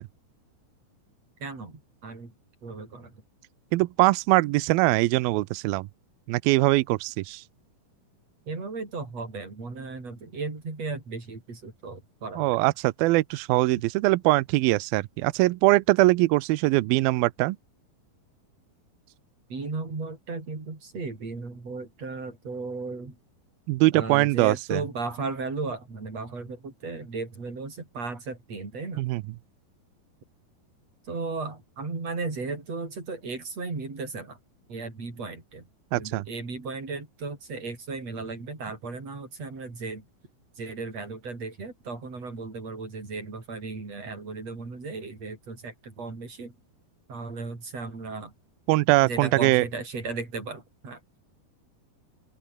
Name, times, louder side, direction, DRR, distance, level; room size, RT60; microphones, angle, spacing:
voice 1, 1.4-2.3 2.6-3.1 8.5-12.6 19.5-23.2 23.9-29.0 31.1-34.4 34.7-35.7 35.9-40.0 40.6-46.5 47.1-48.3 49.0-51.0, right 4 dB, 40° right, 7.6 m, -35 dB
voice 2, 3.7-5.9 6.3-7.4 12.4-17.6 23.7-24.8 29.0-29.2 35.9-36.2 48.7-49.7, right 20 dB, 80° right, 2.5 m, -22 dB
open air
omnidirectional pair, 4.3 m